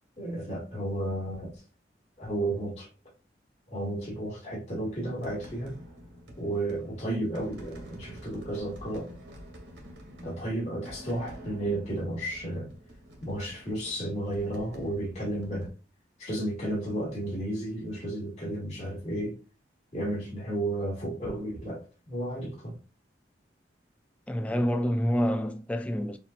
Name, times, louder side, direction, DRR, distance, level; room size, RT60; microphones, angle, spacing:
voice 1, 0.2-1.6 2.2-2.9 3.7-5.7 6.4-9.1 10.2-12.7 13.2-15.7 16.2-19.4 19.9-22.8, right 1 dB, 40° left, 2.4 m, -33 dB
sound 1, 4.8-15.7, equal, 80° right, 1.6 m, -48 dB
voice 2, 24.3-26.2, equal, 5° left, 0.3 m, -27 dB
7.0 x 2.8 x 2.4 m
head